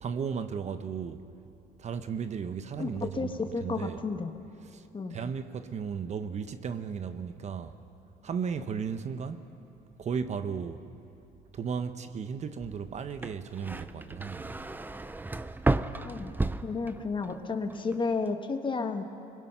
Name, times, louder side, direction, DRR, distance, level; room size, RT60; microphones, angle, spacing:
voice 1, 0.0-1.2 1.8-4.0 4.7-4.8 5.1-7.8 8.2-9.4 10.0-10.8 11.5-14.6, right 6 dB, 40° right, 10 dB, 1.0 m, -35 dB
voice 2, 2.8-4.4 4.9-5.1 16.0-16.3 16.6-19.0, left 4 dB, 30° left, 7 dB, 1.4 m, -32 dB
sound 1, 13.1-17.4 17.7-18.3, right 2 dB, 10° right, 0.6 m, -32 dB
25.0 x 21.5 x 5.6 m, 2.7 s
cardioid pair, 110°, 17 cm